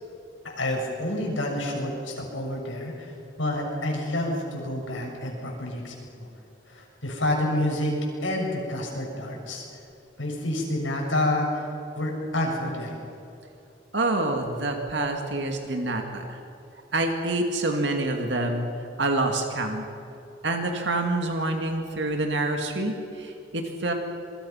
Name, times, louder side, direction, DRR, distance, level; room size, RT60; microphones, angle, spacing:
voice 1, 0.4-3.1 3.4-6.3 6.7-9.6 10.2-11.5 11.9-13.1, left 1 dB, 85° left, 0 dB, 6.4 m, -28 dB
voice 2, 13.9-16.4 16.9-19.9 20.4-23.9, right 2 dB, 65° right, 3 dB, 2.3 m, -27 dB
27.0 x 23.0 x 5.8 m, 2.7 s
head